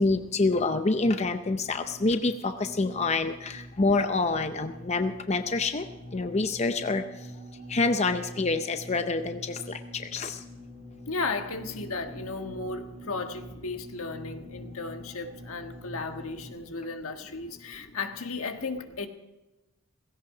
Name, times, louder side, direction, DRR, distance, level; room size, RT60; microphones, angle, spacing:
voice 1, 0.0-2.3 2.8-3.3 3.8-5.8 6.1-7.0 7.7-9.4 10.1-10.3, left 3 dB, 30° left, 8 dB, 0.6 m, -26 dB
sound 1, 1.3-16.5, equal, 40° right, 1.9 m, -46 dB
voice 2, 11.1-19.1, left 3 dB, 85° left, 6 dB, 1.5 m, -35 dB
17.0 x 16.5 x 4.9 m, 1.1 s
head